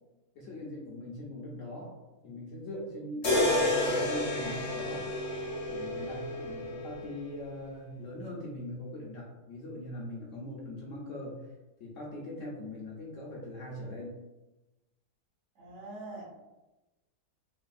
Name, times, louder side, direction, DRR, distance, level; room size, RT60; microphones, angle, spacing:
voice 1, 0.3-1.9 2.2-5.0 5.7-11.4 11.8-14.2, left 1 dB, 65° left, -4 dB, 0.8 m, -41 dB
sound 1, 3.2-7.3, left 1 dB, 45° left, 0.5 m, -30 dB
voice 2, 15.5-16.2, right 2 dB, 60° right, -5 dB, 1.2 m, -43 dB
3.2 x 2.3 x 2.4 m, 1.0 s
omnidirectional pair, 1.7 m